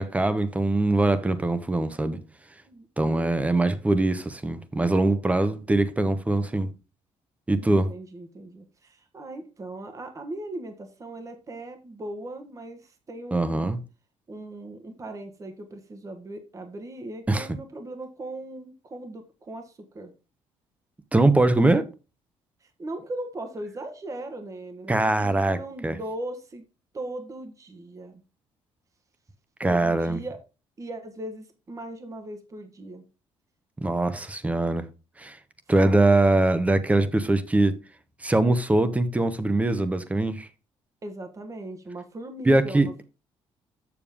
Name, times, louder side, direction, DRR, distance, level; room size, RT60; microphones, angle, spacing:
voice 1, 0.0-2.2 3.0-6.7 7.5-7.9 13.3-13.8 17.3-17.5 21.1-21.8 24.9-25.6 25.8-26.0 29.6-30.2 33.8-34.9 35.2-35.4 35.7-37.8 38.2-40.5 42.5-42.9, right 2 dB, 15° right, 0.9 m, -22 dB
voice 2, 2.6-4.1 7.7-13.7 14.3-20.1 22.6-26.6 26.9-28.2 29.6-30.4 30.8-33.0 35.8-36.2 41.0-43.0, right 1 dB, 30° right, 1.3 m, -39 dB
7.1 x 6.8 x 3.5 m
cardioid pair, 100°, 11 cm